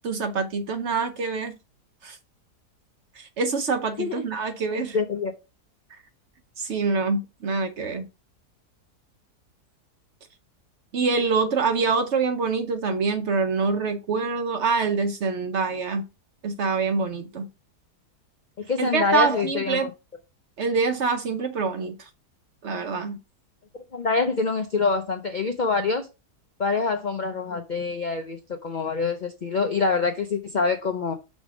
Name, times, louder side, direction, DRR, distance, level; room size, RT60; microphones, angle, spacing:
voice 1, 0.0-1.5 2.0-2.2 3.2-5.0 6.6-8.1 10.9-16.0 16.4-17.5 18.8-19.9 20.6-22.1 22.6-23.2, right 4 dB, 55° right, 0.8 m, -25 dB
voice 2, 4.0-5.3 18.6-19.9 23.9-26.1 26.6-31.1, left 4 dB, 70° left, 0.4 m, -26 dB
6.2 x 3.5 x 5.0 m
omnidirectional pair, 1.7 m